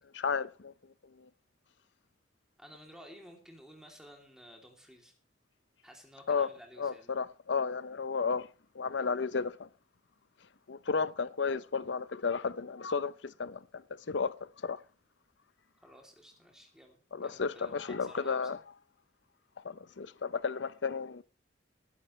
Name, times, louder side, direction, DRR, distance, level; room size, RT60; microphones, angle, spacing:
voice 1, 0.1-0.7 1.2-1.3 6.3-6.5 6.8-8.5 8.7-9.7 10.7-14.8 17.1-18.6 19.6-21.2, left 5 dB, 85° left, 0.7 m, -33 dB
voice 2, 2.6-5.1 5.8-7.2 15.7-18.4, equal, 5° right, 2.9 m, -54 dB
20.5 x 11.0 x 3.2 m
head